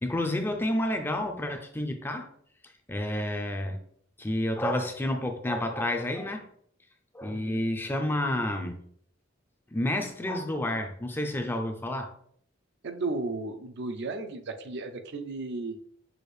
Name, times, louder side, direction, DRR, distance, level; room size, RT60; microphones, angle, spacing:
voice 1, 0.0-2.3 2.9-3.8 4.2-6.5 7.1-8.8 9.7-12.1, left 1 dB, 10° left, 0.4 m, -30 dB
voice 2, 7.3-7.6 12.8-15.8, right 3 dB, 60° right, 0.5 m, -34 dB
6.3 x 2.5 x 3.2 m
head